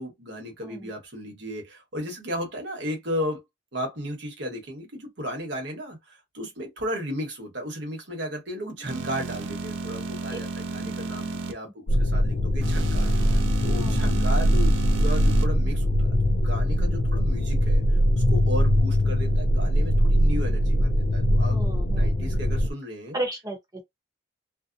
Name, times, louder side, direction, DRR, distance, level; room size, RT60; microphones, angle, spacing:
voice 1, 0.0-3.4 3.7-13.1 13.6-17.8 18.3-21.6 21.9-23.2, equal, 60° right, 1.1 m, -34 dB
sound 1, 8.9-11.5 12.6-15.5, right 4 dB, 75° right, 0.5 m, -33 dB
sound 2, 11.9-22.7, equal, 50° left, 0.4 m, -22 dB
voice 2, 13.7-14.3 21.5-22.3 23.1-23.8, right 1 dB, 20° right, 0.9 m, -35 dB
2.7 x 2.1 x 2.5 m
head